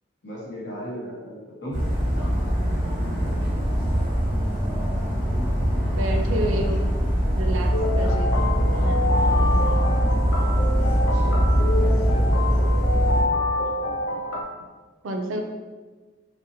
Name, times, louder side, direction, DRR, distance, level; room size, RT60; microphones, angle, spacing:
voice 1, 0.2-1.8 11.1-12.3, equal, 60° left, -5 dB, 0.7 m, -36 dB
Dog, 1.7-13.2, equal, 40° right, 0.8 m, -22 dB
voice 2, 6.0-6.8 7.3-8.4 8.8-9.6 15.0-15.4, right 1 dB, 85° right, 4 dB, 0.4 m, -30 dB
sound 1, 7.7-14.4, left 2 dB, 90° left, 0.4 m, -27 dB
2.6 x 2.1 x 2.7 m, 1.3 s
head